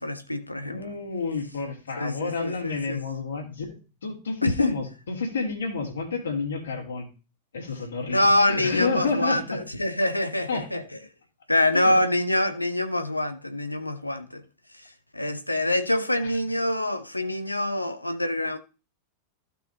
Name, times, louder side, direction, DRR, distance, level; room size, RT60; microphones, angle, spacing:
voice 1, 0.0-0.8 2.0-3.0 4.4-4.7 8.1-10.8 11.5-14.4 15.1-18.6, left 1 dB, 85° left, 0.8 m, -25 dB
voice 2, 0.6-3.7 4.0-7.1 7.5-9.6 10.5-10.7 11.7-11.9 16.2-16.4, left 4 dB, 70° left, 2.9 m, -30 dB
15.0 x 5.6 x 2.9 m
figure-of-eight pair, 90°, 0 cm